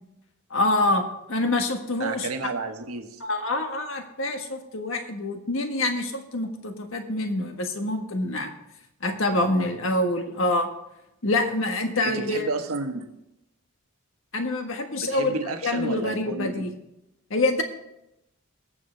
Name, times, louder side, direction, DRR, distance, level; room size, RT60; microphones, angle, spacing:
voice 1, 0.5-2.3 3.2-8.5 9.0-10.7 11.2-12.5 14.3-15.3 15.6-16.7 17.3-17.6, left 2 dB, 65° left, 5 dB, 1.6 m, -26 dB
voice 2, 2.0-3.2 9.3-9.5 12.0-13.1 15.0-16.7, right 3 dB, 85° right, 5 dB, 1.4 m, -31 dB
20.0 x 7.4 x 3.4 m, 0.86 s
head